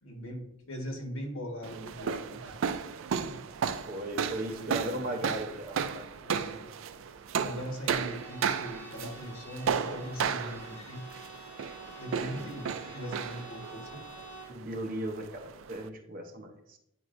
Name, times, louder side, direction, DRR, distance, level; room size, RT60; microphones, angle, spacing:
voice 1, 0.0-2.6 3.1-3.4 4.5-5.1 6.2-6.7 7.4-11.1 11.3-11.4 12.0-14.0, equal, 80° left, 1 dB, 1.5 m, -40 dB
sound 1, 1.6-15.9, right 6 dB, 70° right, 0.4 m, -35 dB
voice 2, 3.9-6.0 12.3-12.5 14.5-16.8, right 1 dB, 40° right, 3 dB, 0.8 m, -37 dB
Bowed string instrument, 8.0-14.6, right 1 dB, 60° left, 1.0 m, -49 dB
9.4 x 4.7 x 2.6 m, 0.78 s
head